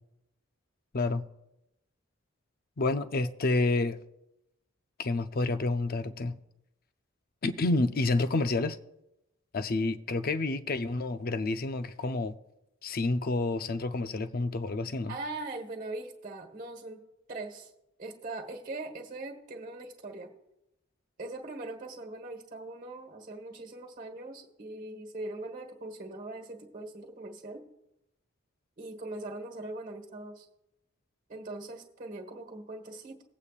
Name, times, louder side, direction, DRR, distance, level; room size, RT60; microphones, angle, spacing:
voice 1, 0.9-1.3 2.8-4.0 5.0-6.4 7.4-8.8 9.5-12.3 12.8-15.1, left 2 dB, 50° left, 0.6 m, -29 dB
voice 2, 15.1-17.0 17.3-17.7 18.0-20.3 21.2-27.7 28.8-30.4 31.3-33.2, right 2 dB, 40° right, 1.4 m, -41 dB
19.5 x 8.4 x 2.4 m
head